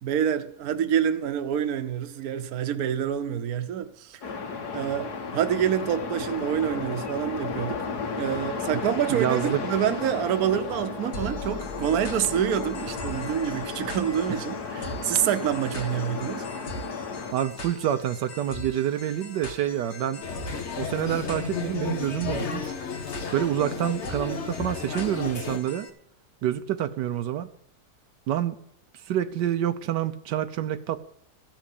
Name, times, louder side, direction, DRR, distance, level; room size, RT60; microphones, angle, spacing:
voice 1, 0.0-4.2 4.7-7.9 8.1-16.4, right 9 dB, 65° right, 1.3 m, -27 dB
sound 1, 4.2-17.3, left 5 dB, 65° left, 1.9 m, -34 dB
voice 2, 9.1-9.6 17.3-20.2 20.8-22.7 23.3-25.9 26.4-27.5 28.3-28.6 29.1-31.0, right 11 dB, 85° right, 1.3 m, -27 dB
sound 2, 11.1-25.9, left 1 dB, 85° left, 2.1 m, -41 dB
sound 3, 20.2-25.6, left 6 dB, 45° left, 1.2 m, -33 dB
15.0 x 6.1 x 8.4 m
omnidirectional pair, 1.8 m